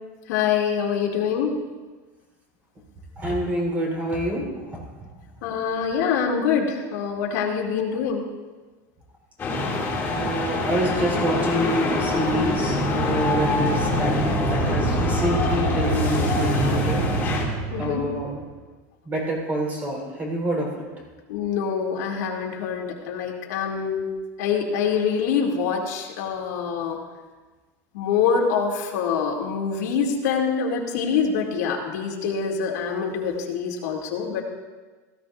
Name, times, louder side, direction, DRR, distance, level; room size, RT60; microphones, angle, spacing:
voice 1, 0.3-1.6 5.4-8.2 17.7-18.0 21.3-24.1 24.4-27.0 27.9-34.4, left 6 dB, 85° left, -1 dB, 2.6 m, -25 dB
voice 2, 3.2-4.8 10.1-14.1 14.4-17.0 17.8-18.5 19.0-20.9, right 1 dB, 20° right, -2 dB, 4.2 m, -27 dB
sound 1, 9.4-17.4, left 2 dB, 25° left, 2.6 m, -25 dB
sound 2, 11.5-18.4, right 2 dB, 75° right, 2.6 m, -28 dB
17.0 x 16.0 x 2.6 m, 1.3 s
supercardioid pair, 165°, 9 cm